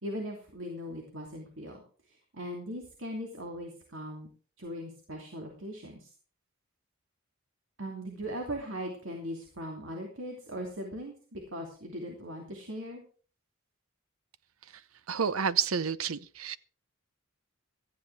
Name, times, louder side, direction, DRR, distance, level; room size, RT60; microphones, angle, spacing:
voice 1, 0.0-4.3 4.6-6.1 7.8-13.0, equal, 65° right, 3.0 m, -39 dB
voice 2, 15.1-16.6, right 7 dB, 90° right, 0.7 m, -29 dB
17.5 x 14.0 x 3.5 m
head